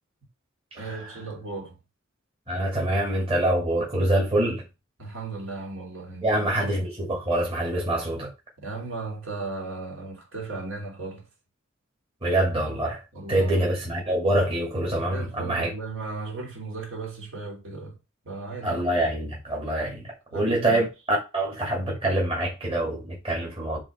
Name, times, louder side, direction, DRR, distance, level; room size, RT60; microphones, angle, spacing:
voice 1, 0.7-1.8 5.0-6.4 8.6-11.3 13.1-13.7 15.1-18.0 18.2-18.9 20.3-20.8, right 3 dB, 60° right, 2.9 m, -36 dB
voice 2, 2.5-4.6 6.2-8.3 12.2-13.0 13.3-15.7 18.6-23.8, right 1 dB, 25° right, 2.0 m, -25 dB
5.3 x 3.8 x 5.9 m
head